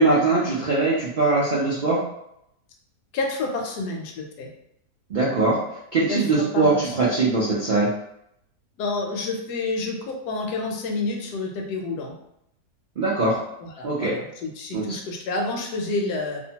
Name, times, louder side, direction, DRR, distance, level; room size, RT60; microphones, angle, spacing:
voice 1, 0.0-2.0 5.1-5.6 5.9-7.9 13.0-13.4 13.8-14.1 14.7-14.8, right 3 dB, 80° right, -7 dB, 0.4 m, -21 dB
voice 2, 3.1-4.5 6.1-6.9 8.8-12.1 13.6-16.4, left 3 dB, 80° left, 1 dB, 1.1 m, -29 dB
2.8 x 2.1 x 2.7 m, 0.78 s
omnidirectional pair, 1.7 m